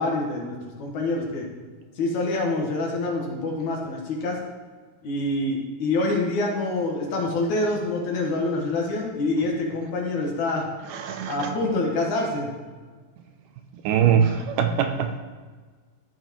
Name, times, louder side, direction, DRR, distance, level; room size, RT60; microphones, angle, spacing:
voice 1, 0.0-1.5 2.0-4.4 5.0-10.7 11.3-12.5, left 2 dB, 65° left, -1 dB, 2.8 m, -26 dB
voice 2, 10.9-11.6 13.8-15.2, right 8 dB, 80° right, 6 dB, 2.0 m, -22 dB
13.5 x 7.6 x 3.1 m, 1.5 s
omnidirectional pair, 3.9 m